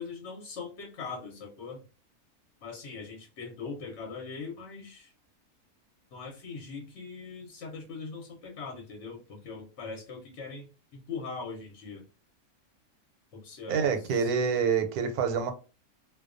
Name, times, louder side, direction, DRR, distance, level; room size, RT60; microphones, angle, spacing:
voice 1, 0.0-1.8 2.6-5.1 6.1-12.1 13.3-14.3, left 4 dB, 60° left, 0.9 m, -41 dB
voice 2, 13.7-15.5, right 6 dB, 90° right, 1.1 m, -27 dB
2.3 x 2.2 x 2.4 m
omnidirectional pair, 1.6 m